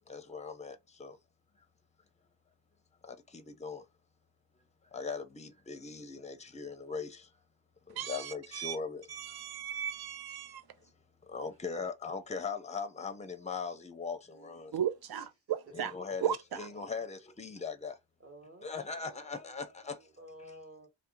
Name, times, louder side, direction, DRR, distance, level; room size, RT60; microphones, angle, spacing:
voice 1, 0.1-1.2 3.0-3.8 4.9-7.3 7.9-9.4 11.3-14.7 15.7-18.0 18.6-20.0 20.4-20.6, left 5 dB, 15° left, 0.6 m, -40 dB
voice 2, 8.0-8.8 9.1-10.6 14.7-15.2 15.5-15.9 16.2-16.6, right 10 dB, 60° right, 0.6 m, -35 dB
voice 3, 11.8-12.1 14.3-14.8 15.1-15.3 16.5-16.9 18.2-18.7 19.0-20.9, right 1 dB, 30° right, 1.4 m, -54 dB
2.8 x 2.1 x 3.6 m
cardioid pair, 70°, 43 cm